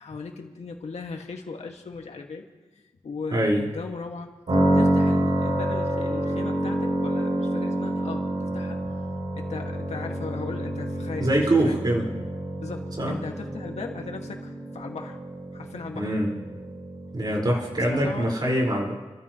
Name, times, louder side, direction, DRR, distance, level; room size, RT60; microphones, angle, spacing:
voice 1, 0.0-2.5 3.0-4.3 4.7-8.8 9.3-11.8 12.6-15.2 15.5-16.1 17.8-18.3, left 4 dB, 75° left, 2 dB, 2.2 m, -37 dB
voice 2, 3.3-3.6 11.2-12.1 13.0-13.2 15.9-16.3 17.1-18.9, right 1 dB, 40° right, -3 dB, 5.3 m, -23 dB
sound 1, 4.5-18.3, right 1 dB, 65° right, 6.6 m, -28 dB
30.0 x 13.5 x 3.2 m, 1.2 s
cardioid pair, 65°, 11 cm